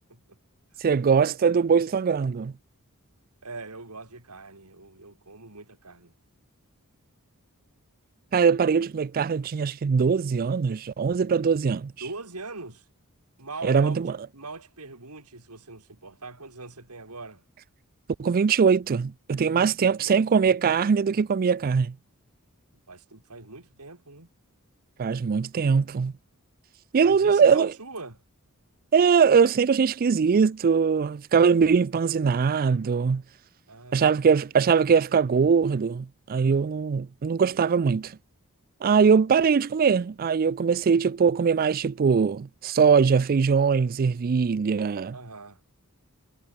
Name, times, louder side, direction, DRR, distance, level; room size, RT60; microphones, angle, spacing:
voice 1, 0.8-2.5 8.3-11.9 13.6-14.2 18.2-22.0 25.0-26.1 26.9-27.7 28.9-33.2 33.9-38.2 38.8-45.2, right 6 dB, 40° right, 0.4 m, -21 dB
voice 2, 3.4-6.1 12.0-12.8 13.4-14.0 14.3-17.4 19.6-20.2 22.9-24.3 27.0-28.2 33.7-34.2 45.1-45.6, right 3 dB, 90° right, 4.5 m, -41 dB
head